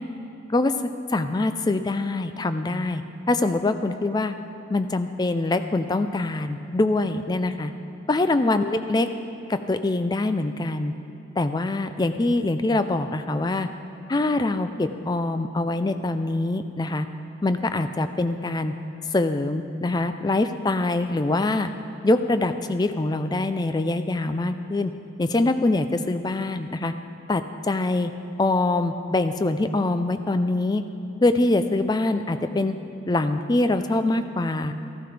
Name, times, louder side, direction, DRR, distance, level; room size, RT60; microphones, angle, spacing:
voice 1, 1.1-4.3 4.7-7.7 8.1-9.1 9.5-10.9 11.4-13.7 14.1-17.1 17.4-18.7 19.1-21.7 22.0-24.9 25.2-26.9 27.3-28.1 28.4-30.8 31.2-32.7 33.1-34.7, left 2 dB, 20° left, 9 dB, 0.3 m, -24 dB
14.0 x 11.5 x 3.3 m, 2.8 s
head